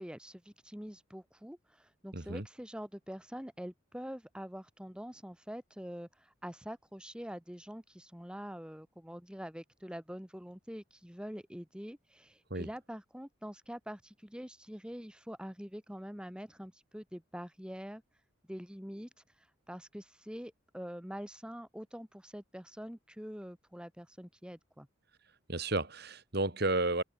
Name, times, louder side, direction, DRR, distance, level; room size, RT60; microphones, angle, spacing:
voice 1, 0.0-18.0 18.5-19.1 19.4-24.9, equal, 5° right, 2.1 m, -45 dB
voice 2, 2.1-2.4 12.5-12.7 25.5-27.0, right 2 dB, 50° right, 2.8 m, -32 dB
head